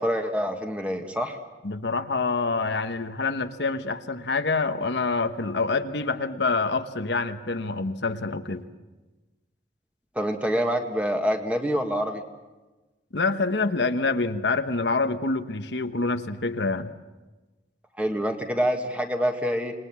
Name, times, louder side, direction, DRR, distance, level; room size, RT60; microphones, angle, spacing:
voice 1, 0.0-1.4 10.2-12.2 18.0-19.7, equal, 10° right, 4 dB, 1.8 m, -26 dB
voice 2, 1.6-8.7 13.1-16.9, left 3 dB, 75° left, 8 dB, 1.1 m, -26 dB
27.0 x 20.5 x 7.4 m, 1.2 s
head